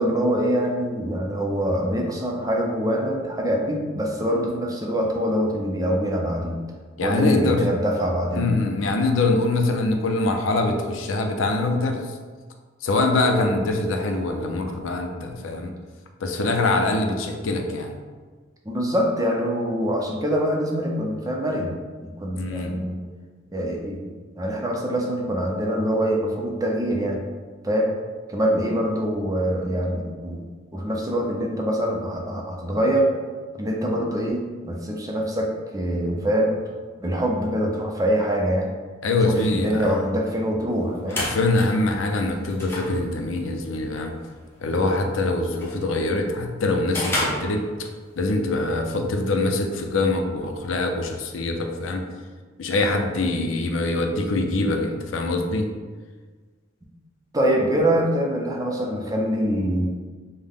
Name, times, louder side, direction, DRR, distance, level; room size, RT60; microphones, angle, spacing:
voice 1, 0.0-6.6 7.0-8.5 18.6-21.7 22.0-23.0 23.5-27.2 27.6-27.9 28.3-30.5 30.7-33.1 33.6-36.6 37.0-38.7 39.2-41.2 57.3-59.9, equal, 20° right, 0 dB, 0.5 m, -24 dB
voice 2, 7.0-7.7 8.4-12.2 12.8-15.7 16.2-18.0 22.4-22.7 39.0-39.9 41.1-44.1 44.6-47.9 48.2-52.0 52.6-55.7, left 2 dB, 90° left, 4 dB, 0.5 m, -24 dB
sound 1, 40.7-48.2, left 1 dB, 10° left, 0.8 m, -34 dB
5.5 x 2.1 x 3.5 m, 1.4 s
head